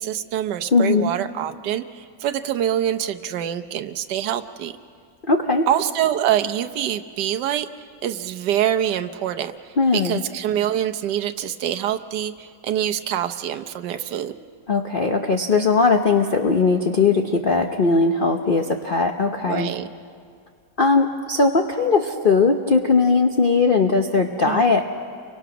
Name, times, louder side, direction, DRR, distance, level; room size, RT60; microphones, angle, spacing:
voice 1, 0.0-4.7 5.7-7.7 8.0-14.3 19.4-19.9 24.4-24.7, right 10 dB, 75° right, 8 dB, 1.4 m, -25 dB
voice 2, 0.7-1.1 5.3-5.7 9.8-10.2 14.7-19.7 20.8-24.8, left 4 dB, 40° left, 3 dB, 0.9 m, -19 dB
30.0 x 24.0 x 6.0 m, 2.2 s
omnidirectional pair, 1.9 m